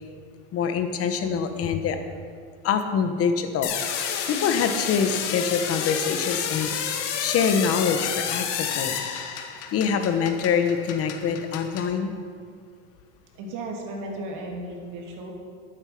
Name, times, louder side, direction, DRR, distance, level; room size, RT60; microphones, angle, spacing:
voice 1, 0.5-2.0 2.6-3.7 4.3-6.7 7.2-9.0 9.7-12.1, left 6 dB, 40° left, 7 dB, 1.2 m, -25 dB
sound 1, 3.6-9.8, left 8 dB, 80° left, 1.6 m, -29 dB
sound 2, 5.8-11.9, left 8 dB, 60° left, 1.4 m, -43 dB
voice 2, 13.3-15.3, right 2 dB, 60° right, 0 dB, 3.0 m, -35 dB
12.0 x 9.0 x 6.0 m, 2.1 s
supercardioid pair, 120°, 34 cm